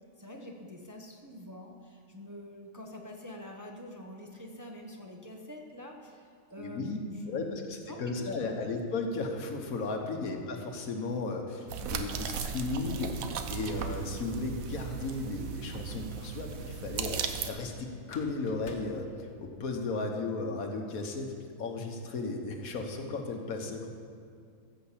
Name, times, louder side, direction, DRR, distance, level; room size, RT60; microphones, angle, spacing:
voice 1, 0.2-8.7 10.1-10.4, left 1 dB, 15° right, 1 dB, 0.8 m, -46 dB
voice 2, 6.6-7.0 7.2-23.9, left 3 dB, 85° left, 3 dB, 1.6 m, -35 dB
sound 1, 11.7-17.5, right 7 dB, 80° right, 1.2 m, -36 dB
sound 2, 18.0-20.0, left 2 dB, 55° left, 1.2 m, -52 dB
14.5 x 5.9 x 7.3 m, 2.3 s
omnidirectional pair, 1.4 m